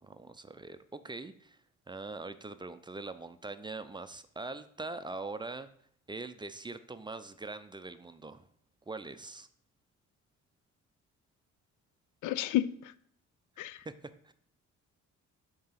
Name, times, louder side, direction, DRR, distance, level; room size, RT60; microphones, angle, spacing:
voice 1, 0.0-1.6 1.9-5.7 6.1-8.5 8.9-9.5 14.0-14.3, right 3 dB, 15° right, 11 dB, 0.4 m, -42 dB
voice 2, 12.2-12.9 13.6-13.8, left 13 dB, 80° left, 15 dB, 0.5 m, -31 dB
7.3 x 2.9 x 5.7 m, 0.64 s
cardioid pair, 90°, 30 cm